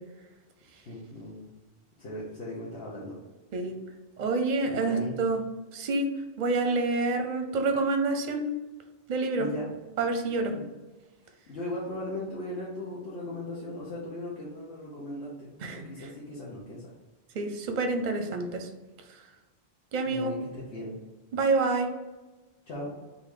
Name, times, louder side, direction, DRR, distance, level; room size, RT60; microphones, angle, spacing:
voice 1, 0.8-1.5 2.0-3.2 4.6-5.1 9.4-9.7 10.5-10.6 11.5-16.9 20.1-20.9 22.7-22.9, left 1 dB, 85° left, -6 dB, 1.2 m, -38 dB
voice 2, 4.2-5.4 5.7-6.1 6.4-8.4 9.1-9.5 10.0-10.5 15.6-16.1 17.3-18.7 19.9-20.3 21.3-21.9, right 3 dB, 50° right, 5 dB, 0.6 m, -27 dB
3.8 x 2.7 x 4.7 m, 1.2 s
omnidirectional pair, 1.1 m